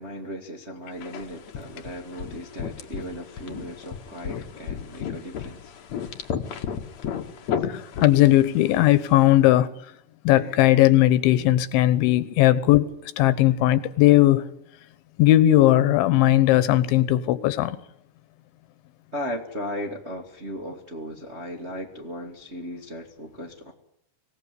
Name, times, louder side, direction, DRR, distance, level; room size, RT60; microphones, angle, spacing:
voice 1, 0.0-5.7 19.1-23.7, equal, 25° right, 1 dB, 1.4 m, -36 dB
sound 1, 1.0-9.2, left 8 dB, 55° left, 2.2 m, -34 dB
voice 2, 7.7-9.7 10.3-14.5 15.2-17.8, left 14 dB, 85° left, 15 dB, 3.5 m, -18 dB
25.0 x 18.0 x 10.0 m, 0.74 s
omnidirectional pair, 5.2 m